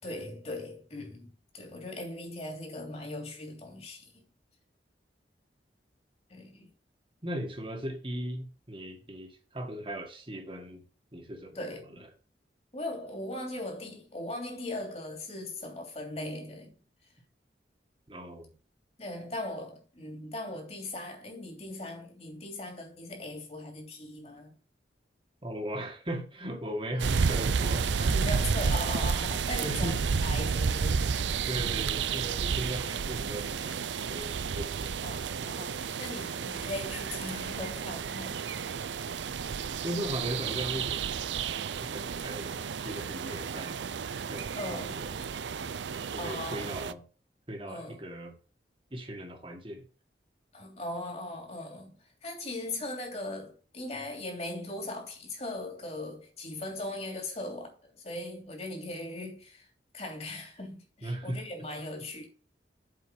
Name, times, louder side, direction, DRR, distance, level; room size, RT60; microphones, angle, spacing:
voice 1, 0.0-1.3 1.5-4.2 6.3-6.7 11.5-12.0 12.7-16.7 19.0-24.5 28.0-31.2 35.0-38.4 44.6-45.0 46.2-46.8 47.7-48.0 50.5-59.7 59.9-62.3, left 1 dB, 35° left, 3.2 m, -39 dB
voice 2, 7.2-10.8 11.1-11.6 12.0-12.1 18.1-18.5 25.4-27.9 29.6-30.0 31.4-34.9 39.8-41.1 41.8-43.8 44.3-45.0 45.5-45.7 46.1-47.0 47.5-48.3 48.9-49.8 61.0-61.4, right 1 dB, 30° right, 1.9 m, -38 dB
sound 1, 27.0-46.9, right 5 dB, 90° right, 0.5 m, -31 dB
8.1 x 5.1 x 6.4 m
head